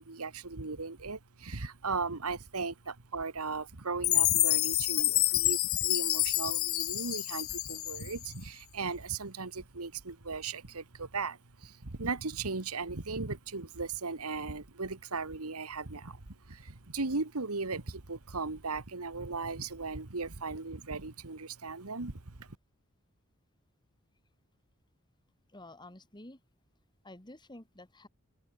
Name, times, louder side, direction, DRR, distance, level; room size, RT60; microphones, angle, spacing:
voice 1, 0.0-22.5, right 4 dB, 90° right, 1.8 m, -37 dB
Chime, 4.0-8.3, left 19 dB, 65° left, 0.8 m, -28 dB
voice 2, 25.5-26.4 27.0-28.1, left 1 dB, 20° left, 2.3 m, -50 dB
open air
head